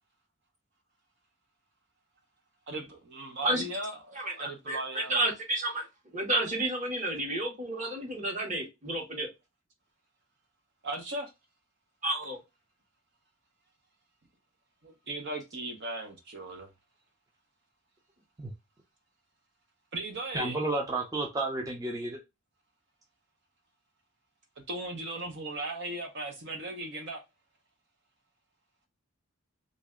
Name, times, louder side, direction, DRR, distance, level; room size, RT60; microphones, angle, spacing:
voice 1, 2.7-5.1 10.8-11.3 14.8-16.7 19.9-20.6 24.7-27.2, right 2 dB, 55° right, 0.8 m, -37 dB
voice 2, 4.1-5.9 6.1-9.3 12.0-12.4, right 1 dB, 35° right, 1.3 m, -31 dB
voice 3, 20.3-22.2, right 2 dB, 15° right, 0.5 m, -31 dB
3.2 x 2.6 x 3.5 m
head